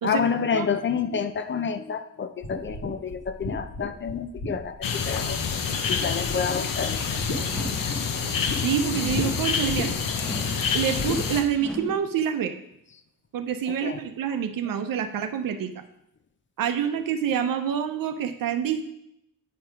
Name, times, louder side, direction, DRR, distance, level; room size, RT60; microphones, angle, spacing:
voice 1, 0.0-5.4 5.9-7.5 13.7-14.0, left 6 dB, 35° left, 10 dB, 0.6 m, -29 dB
sound 1, 2.4-5.7 6.0-6.6 6.9-8.6 9.1-9.3 9.7-10.2 11.0-11.2, left 2 dB, 50° left, 1.6 m, -33 dB
sound 2, 4.8-11.4, left 6 dB, 70° left, 0.9 m, -27 dB
sound 3, 7.5-8.0 8.9-9.4 10.2-10.7 11.6-12.1, equal, ahead, 0.8 m, -38 dB
voice 2, 8.6-9.9 10.7-12.5 13.3-15.8 16.6-18.8, right 8 dB, 75° right, 7 dB, 0.7 m, -27 dB
8.5 x 4.4 x 5.0 m, 0.78 s
cardioid pair, 120°, 34 cm